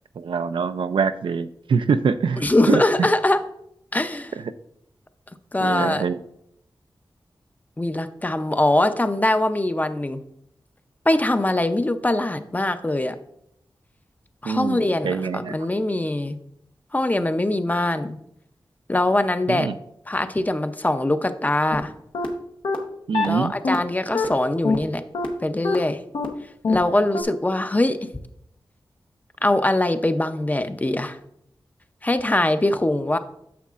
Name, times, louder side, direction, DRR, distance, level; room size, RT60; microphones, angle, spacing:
voice 1, 0.2-3.1 5.6-6.2 14.4-15.5 19.5-19.8 23.1-23.5, right 5 dB, 80° right, 11 dB, 0.4 m, -24 dB
voice 2, 2.4-3.4 3.9-4.3 5.5-6.0 7.8-10.2 11.1-13.2 14.4-16.4 16.9-18.2 18.9-19.7 20.1-21.9 23.3-25.0 25.4-26.0 26.7-28.0 29.4-31.2 32.0-33.2, left 1 dB, 20° left, 10 dB, 0.5 m, -22 dB
sound 1, 21.7-21.8 22.1-22.3 22.6-22.8 23.1-23.3 23.6-23.8 24.1-24.3 24.6-24.8 25.1-25.3 25.6-25.8 26.1-26.3 26.6-26.8 27.1-27.2, left 4 dB, 90° left, 0.9 m, -22 dB
9.3 x 6.6 x 2.4 m, 0.74 s
wide cardioid pair, 90°, 8 cm